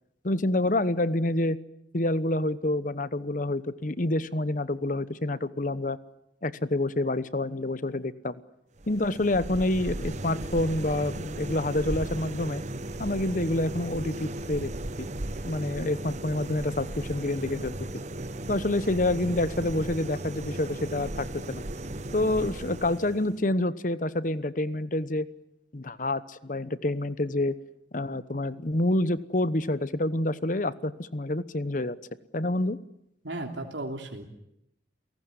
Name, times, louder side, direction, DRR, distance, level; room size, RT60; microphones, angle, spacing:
voice 1, 0.2-1.6 1.9-6.0 6.4-8.4 8.9-12.6 13.0-14.7 15.0-15.1 15.5-17.7 18.5-21.6 22.1-25.3 25.7-27.6 27.9-32.0 32.3-32.8, left 1 dB, 45° left, 15 dB, 1.0 m, -27 dB
sound 1, 8.8-23.4, right 1 dB, 40° right, 1.0 m, -36 dB
voice 2, 33.2-34.2, right 2 dB, 85° right, 2 dB, 3.2 m, -35 dB
29.5 x 18.0 x 9.6 m, 0.82 s
head